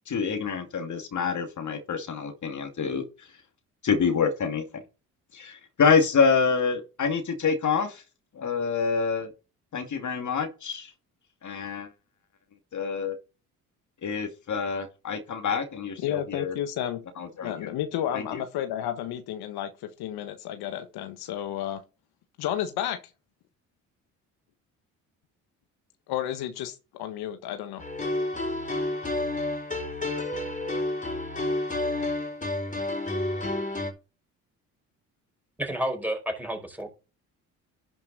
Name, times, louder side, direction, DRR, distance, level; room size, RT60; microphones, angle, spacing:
voice 1, 0.1-3.3 3.8-4.8 5.3-8.0 8.3-9.3 9.7-10.9 11.4-11.9 12.7-13.2 14.0-16.5 17.2-17.7 18.1-18.4, left 5 dB, 50° left, 2.4 m, -27 dB
voice 2, 16.0-17.0 17.4-21.8 22.4-23.0 26.1-27.8, left 11 dB, 70° left, 1.4 m, -32 dB
sound 1, 27.8-33.9, left 2 dB, 20° left, 4.1 m, -30 dB
voice 3, 35.6-36.9, equal, 5° right, 5.0 m, -30 dB
11.5 x 5.5 x 4.2 m
hypercardioid pair, 55°, 39 cm